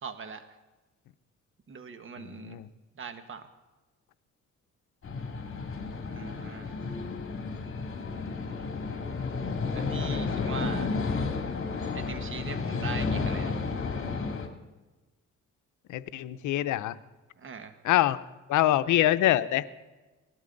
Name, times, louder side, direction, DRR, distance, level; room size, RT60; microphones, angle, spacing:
voice 1, 0.0-0.4 1.7-2.6 2.9-3.5 6.1-6.7 9.7-10.9 11.9-13.6 17.4-17.8, right 5 dB, 40° right, 8 dB, 1.4 m, -41 dB
sound 1, 5.0-14.5, left 4 dB, 45° left, 2.4 m, -32 dB
voice 2, 15.9-17.0 17.8-18.2 18.5-19.6, left 14 dB, 80° left, 14 dB, 0.7 m, -24 dB
17.5 x 12.0 x 3.9 m, 1.2 s
cardioid pair, 90°, 30 cm